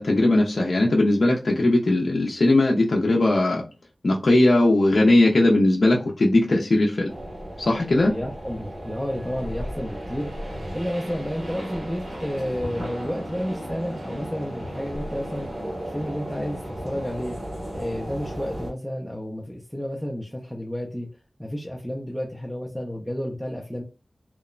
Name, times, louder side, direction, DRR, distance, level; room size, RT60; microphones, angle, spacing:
voice 1, 0.0-3.6 4.0-7.1 7.6-8.1, left 2 dB, 60° left, -1 dB, 0.4 m, -19 dB
sound 1, 7.1-18.7, equal, 55° right, 1.2 m, -35 dB
voice 2, 8.1-17.4 17.7-21.1 21.4-23.8, equal, ahead, -1 dB, 0.4 m, -31 dB
2.9 x 2.0 x 2.3 m, 0.33 s
wide cardioid pair, 85°, 0 cm